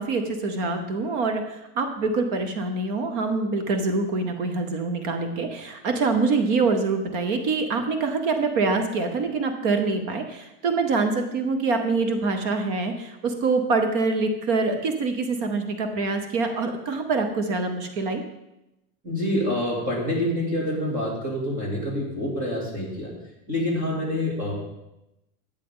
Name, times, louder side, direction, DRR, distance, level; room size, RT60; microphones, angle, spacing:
voice 1, 0.0-18.2, right 3 dB, 35° right, 7 dB, 0.8 m, -25 dB
voice 2, 19.0-23.1 23.5-24.5, left 1 dB, 15° right, -3 dB, 2.5 m, -27 dB
12.0 x 8.2 x 3.7 m, 0.91 s
supercardioid pair, 180°, 45 cm